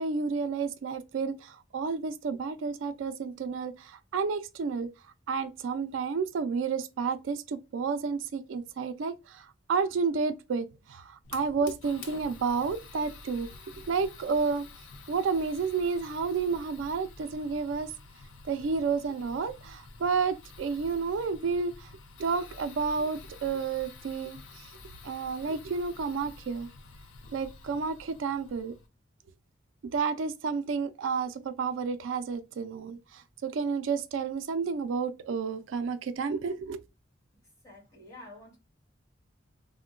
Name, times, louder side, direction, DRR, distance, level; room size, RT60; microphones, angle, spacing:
voice 1, 0.0-4.9 5.3-13.5 13.8-14.7 15.1-17.9 18.4-21.9 22.2-24.7 25.0-26.7 27.3-28.7 29.9-36.8, right 5 dB, 85° right, 0.4 m, -31 dB
Fire, 11.2-28.9, left 3 dB, 90° left, 0.6 m, -49 dB
voice 2, 37.4-38.6, left 2 dB, 15° left, 1.6 m, -50 dB
3.6 x 2.1 x 2.4 m
head